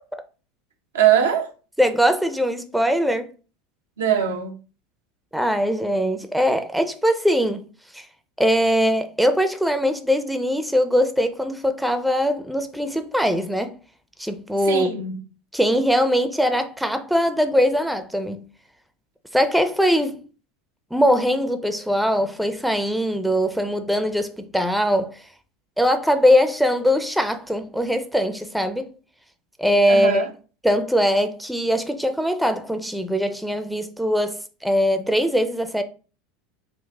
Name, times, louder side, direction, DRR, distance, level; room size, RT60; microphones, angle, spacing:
voice 1, 0.9-1.5 4.0-4.5 14.7-15.2 29.9-30.3, right 9 dB, 85° right, 0.7 m, -21 dB
voice 2, 1.8-3.3 5.3-7.7 7.9-8.1 8.4-13.8 14.2-14.9 15.5-18.5 19.3-20.2 20.9-25.3 25.8-28.9 29.6-30.3 30.6-35.8, equal, ahead, 0.5 m, -21 dB
3.9 x 2.4 x 3.4 m
hypercardioid pair, 90°, 0 cm